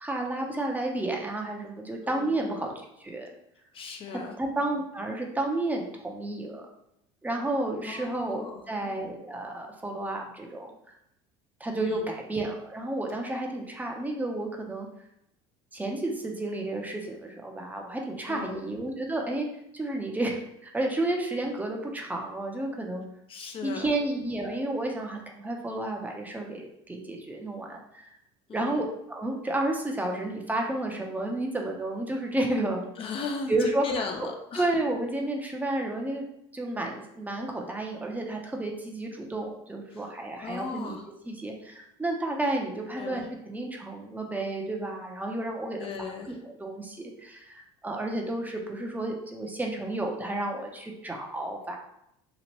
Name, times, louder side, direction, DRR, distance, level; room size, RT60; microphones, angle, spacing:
voice 1, 0.0-2.7 3.0-3.3 4.4-6.7 7.2-10.7 11.6-14.9 15.7-19.5 19.7-23.0 23.6-28.0 28.5-32.8 33.5-33.8 34.2-36.3 36.5-41.0 41.3-46.1 46.4-51.8, right 2 dB, 10° right, 1 dB, 0.6 m, -31 dB
voice 2, 2.0-2.5 3.7-4.4 7.8-8.6 11.7-12.1 18.3-18.6 23.3-23.9 28.5-28.8 33.0-34.7 39.9-40.1 40.4-41.1 42.9-43.2 45.8-46.4, left 5 dB, 40° left, 4 dB, 0.4 m, -37 dB
2.9 x 2.4 x 3.0 m, 0.78 s
supercardioid pair, 85°, 14 cm